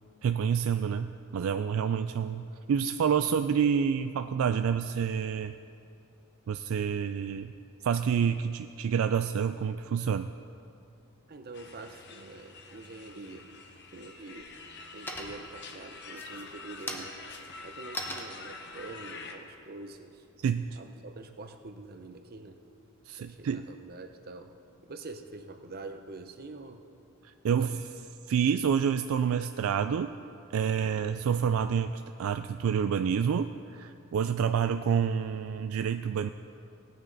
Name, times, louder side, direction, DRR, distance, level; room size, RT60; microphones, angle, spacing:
voice 1, 0.2-5.5 6.5-7.5 7.8-10.3 20.4-20.8 23.1-23.6 27.2-27.9 28.3-30.2 30.5-36.3, right 7 dB, 70° right, 9 dB, 0.3 m, -28 dB
voice 2, 11.3-13.5 13.9-14.5 14.9-17.1 17.6-20.2 20.7-22.6 23.2-24.5 24.8-26.8 27.5-27.8, right 3 dB, 45° right, 7 dB, 0.8 m, -45 dB
sound 1, 11.5-19.3, left 3 dB, 50° left, 1.0 m, -46 dB
sound 2, 13.4-14.0 14.4-14.8 15.1-15.6 16.1-20.5, left 1 dB, 10° left, 0.9 m, -41 dB
18.5 x 9.4 x 4.0 m, 2.6 s
head